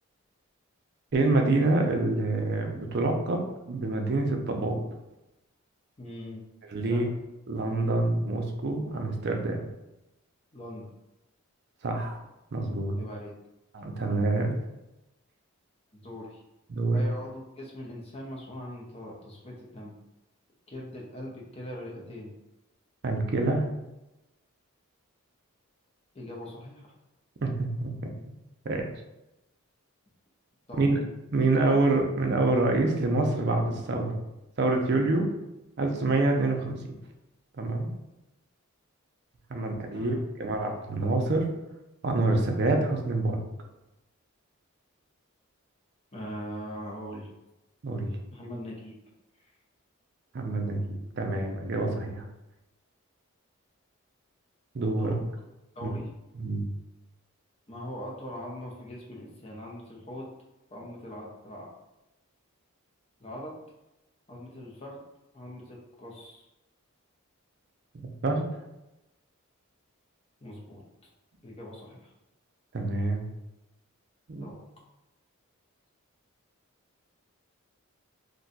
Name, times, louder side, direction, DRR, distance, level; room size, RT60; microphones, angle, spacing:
voice 1, 1.1-4.8 6.7-7.1 7.5-9.7 11.8-12.2 12.5-13.0 13.7-14.6 16.7-17.0 23.0-23.7 27.4-28.1 28.6-28.9 30.8-31.0 31.3-34.2 34.6-35.3 35.8-36.8 37.6-37.9 39.5-41.5 42.0-43.4 47.8-48.2 50.3-52.2 54.7-55.2 55.8-55.9 56.4-56.7 68.2-68.5 72.7-73.2 74.3-74.5, right 2 dB, 50° right, 3 dB, 0.4 m, -26 dB
voice 2, 6.0-6.5 6.9-7.1 10.5-10.9 12.9-13.4 15.9-16.4 16.9-20.0 20.7-22.3 26.1-26.9 30.7-30.9 31.6-31.9 39.5-40.2 46.1-47.4 48.3-49.0 55.0-55.2 55.7-56.1 57.7-60.3 60.7-61.7 63.2-63.5 64.3-65.0 65.3-66.4 70.4-70.8 71.4-72.1 74.4-74.6, equal, 25° left, -3 dB, 0.6 m, -41 dB
2.6 x 2.2 x 3.9 m, 0.95 s
head